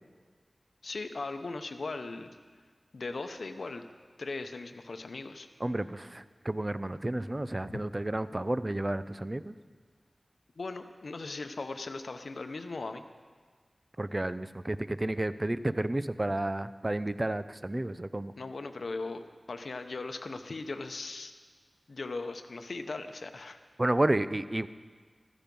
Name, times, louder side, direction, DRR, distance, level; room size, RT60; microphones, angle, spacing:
voice 1, 0.8-2.3 2.9-3.8 4.2-5.5 7.7-7.8 10.6-13.0 18.4-21.3 21.9-23.6, left 3 dB, 85° left, 7 dB, 0.8 m, -38 dB
voice 2, 5.6-9.5 14.0-18.3 23.8-24.7, right 1 dB, 30° right, 13 dB, 0.5 m, -31 dB
15.0 x 13.5 x 5.4 m, 1.5 s
wide cardioid pair, 60°, 0 cm